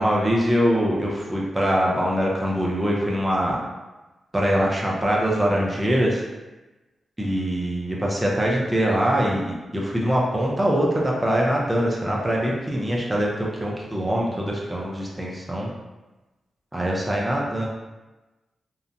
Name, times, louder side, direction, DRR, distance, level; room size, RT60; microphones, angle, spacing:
voice 1, 0.0-3.6 4.3-6.2 7.2-15.7 16.7-17.7, equal, 15° right, -3 dB, 0.5 m, -23 dB
2.8 x 2.1 x 2.5 m, 1.1 s
cardioid pair, 75°, 0 cm